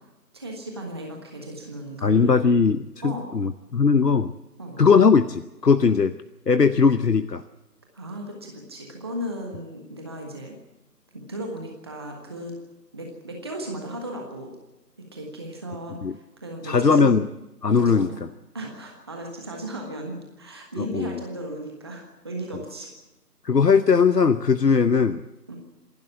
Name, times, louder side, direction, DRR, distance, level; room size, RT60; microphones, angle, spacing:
voice 1, 0.3-2.4 3.0-3.3 4.6-4.8 7.9-10.5 11.1-12.6 12.9-14.5 15.1-17.4 17.8-18.2 18.5-22.9 25.5-25.6, right 1 dB, 15° right, 1 dB, 1.4 m, -36 dB
voice 2, 2.0-4.3 4.8-6.2 6.5-7.4 16.0-16.1 16.6-17.3 17.6-18.1 20.8-21.2 23.4-25.2, left 5 dB, 80° left, 13 dB, 0.9 m, -19 dB
26.5 x 12.0 x 8.5 m, 0.99 s
figure-of-eight pair, 155°, 49 cm